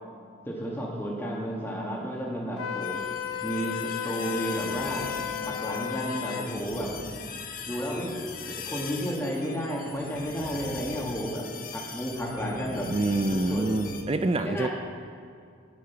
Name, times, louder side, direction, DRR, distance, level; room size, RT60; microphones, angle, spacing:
voice 1, 0.4-3.0 3.4-5.1 5.4-6.9 7.7-8.1 8.7-11.4 11.7-12.9 13.3-13.7 14.4-14.7, equal, 10° left, -3 dB, 2.0 m, -32 dB
Wind instrument woodwind instrument, 2.6-6.5, left 10 dB, 85° left, 0.6 m, -34 dB
sound 1, 2.8-14.0, left 5 dB, 40° left, 1.0 m, -40 dB
voice 2, 12.9-14.7, right 2 dB, 25° right, 9 dB, 0.4 m, -26 dB
12.0 x 10.5 x 5.9 m, 2.4 s
head